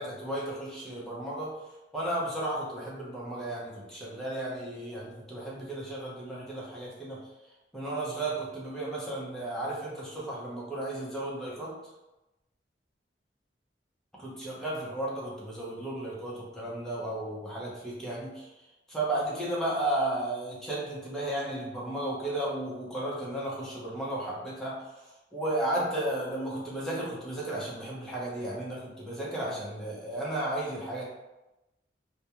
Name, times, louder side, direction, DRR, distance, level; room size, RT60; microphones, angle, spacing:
voice 1, 0.0-1.5 1.9-7.2 7.7-11.7 14.1-18.5 18.9-24.8 25.3-31.0, right 1 dB, 5° left, -6 dB, 0.6 m, -34 dB
2.3 x 2.2 x 2.9 m, 0.98 s
head